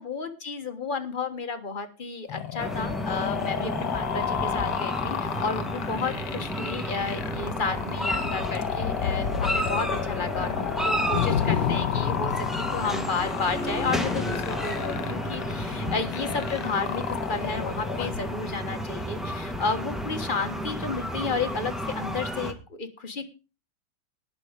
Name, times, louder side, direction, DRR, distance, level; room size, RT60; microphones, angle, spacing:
voice 1, 0.0-12.3 12.7-17.0 17.3-23.3, left 4 dB, 25° left, 7 dB, 1.4 m, -32 dB
sound 1, 2.3-18.3, left 10 dB, 85° left, 1.9 m, -33 dB
sound 2, 2.6-22.5, equal, ahead, 1.3 m, -32 dB
sound 3, 7.2-18.8, left 8 dB, 60° left, 1.7 m, -33 dB
19.0 x 6.3 x 5.2 m, 0.33 s
omnidirectional pair, 2.4 m